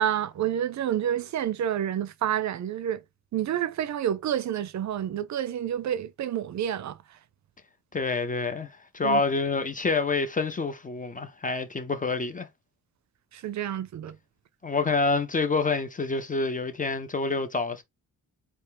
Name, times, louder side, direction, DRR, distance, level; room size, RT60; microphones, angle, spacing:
voice 1, 0.0-3.0 3.3-7.0 9.0-9.2 13.3-14.2, right 10 dB, 55° right, 0.5 m, -29 dB
voice 2, 7.9-8.7 8.9-12.5 14.6-17.8, left 3 dB, 25° left, 0.5 m, -27 dB
4.4 x 2.8 x 3.3 m
wide cardioid pair, 165°, 34 cm